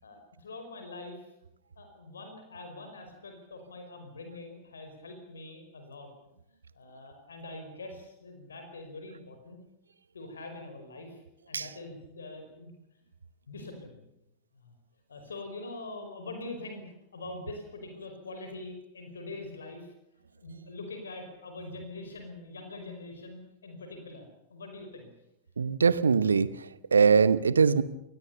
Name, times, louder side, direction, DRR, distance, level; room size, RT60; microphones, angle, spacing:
voice 1, 0.0-1.3 1.8-6.1 6.7-9.6 10.1-12.7 13.5-14.0 14.5-14.7 15.1-19.9 20.4-25.1, left 2 dB, 70° left, 6 dB, 5.0 m, -44 dB
voice 2, 25.6-27.8, right 5 dB, 75° right, 16 dB, 1.1 m, -22 dB
27.5 x 19.5 x 6.9 m, 0.84 s
figure-of-eight pair, 90°, 0 cm